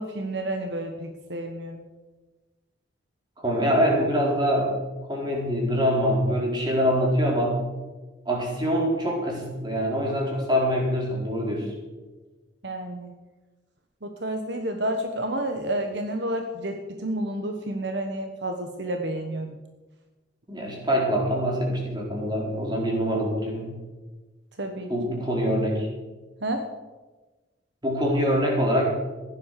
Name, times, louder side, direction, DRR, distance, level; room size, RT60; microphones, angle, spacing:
voice 1, 0.0-1.8 12.6-13.1 14.0-19.5 24.6-24.9 26.4-26.7, right 1 dB, 65° right, 5 dB, 1.3 m, -30 dB
voice 2, 3.4-4.8 5.1-7.6 8.3-11.7 20.5-23.7 24.9-25.9 27.8-28.9, equal, 25° right, -2 dB, 4.3 m, -24 dB
15.5 x 11.0 x 6.7 m, 1.2 s
head